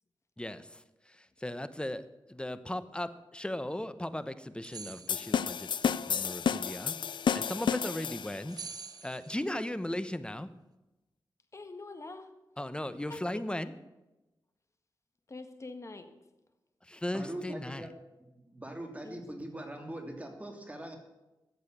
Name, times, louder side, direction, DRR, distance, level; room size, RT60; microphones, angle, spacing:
voice 1, 0.4-8.6 9.0-10.5 12.6-13.7 16.8-17.9, left 1 dB, 10° left, 1.0 m, -37 dB
sound 1, 4.6-5.5 8.5-9.6, right 5 dB, 50° right, 0.8 m, -45 dB
sound 2, 5.1-8.5, left 7 dB, 70° left, 0.4 m, -31 dB
voice 2, 11.5-12.3 13.1-13.4 15.3-16.2 19.0-19.2, left 3 dB, 35° left, 1.7 m, -45 dB
voice 3, 17.1-17.9 18.3-21.0, right 1 dB, 15° right, 2.9 m, -41 dB
14.0 x 8.1 x 8.1 m
cardioid pair, 75°, 8 cm